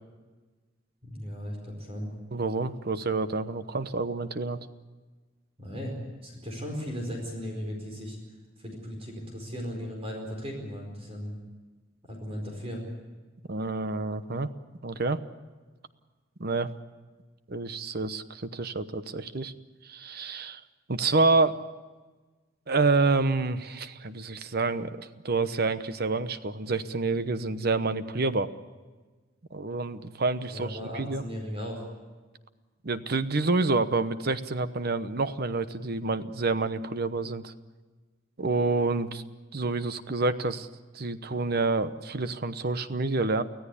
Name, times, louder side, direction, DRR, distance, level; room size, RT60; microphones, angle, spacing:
voice 1, 1.0-2.1 5.6-5.9 6.2-8.2 8.6-11.4 12.0-12.8 30.5-31.9, equal, 30° right, 1 dB, 4.7 m, -36 dB
voice 2, 2.3-4.6 13.5-14.5 14.8-15.2 16.4-16.7 17.5-19.5 19.8-20.6 20.9-21.6 22.7-28.5 29.5-31.2 32.8-37.5 38.4-39.2 39.5-40.7 40.9-43.4, right 3 dB, 50° right, 12 dB, 1.0 m, -28 dB
24.5 x 16.5 x 8.4 m, 1.3 s
head